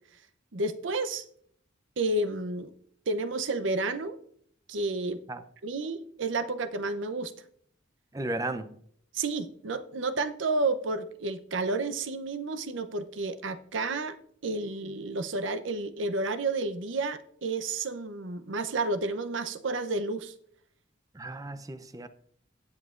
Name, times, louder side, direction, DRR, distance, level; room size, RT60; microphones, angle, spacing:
voice 1, 0.5-1.2 2.0-2.7 3.1-4.2 4.7-5.2 5.6-7.3 9.1-14.2 14.4-20.3, right 3 dB, 75° right, 0.7 m, -31 dB
voice 2, 8.1-8.8 21.2-22.1, right 2 dB, 20° right, 0.5 m, -34 dB
19.0 x 7.3 x 2.5 m
head